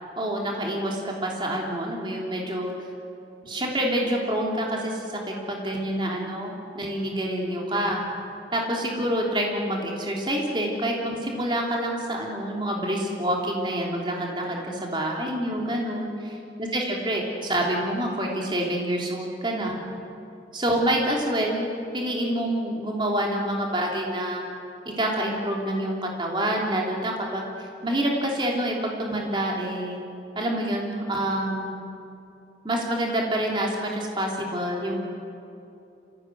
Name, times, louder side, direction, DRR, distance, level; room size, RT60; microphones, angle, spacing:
voice 1, 0.2-2.7 3.4-8.0 8.5-19.8 20.5-21.7 21.9-24.4 25.0-30.0 30.4-31.7 32.6-35.0, right 1 dB, 25° right, -1 dB, 3.3 m, -27 dB
26.5 x 16.5 x 9.5 m, 2.8 s
head